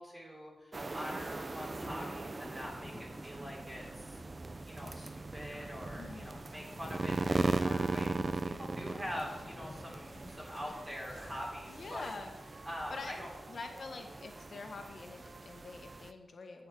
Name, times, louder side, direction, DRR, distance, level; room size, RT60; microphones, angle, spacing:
voice 1, 0.0-4.2 4.7-12.1 12.7-13.3, equal, 15° right, -4 dB, 3.6 m, -44 dB
sound 1, 0.7-16.1, right 3 dB, 35° right, 0.7 m, -39 dB
sound 2, 1.4-11.2, left 2 dB, 30° left, 0.6 m, -51 dB
voice 2, 6.0-6.4 11.7-12.4 12.9-13.1 13.5-16.7, left 3 dB, 60° left, 4 dB, 1.9 m, -45 dB
sound 3, 6.1-13.4, right 1 dB, 80° right, 3.6 m, -58 dB
8.7 x 8.6 x 8.8 m, 1.2 s
wide cardioid pair, 105°, 0 cm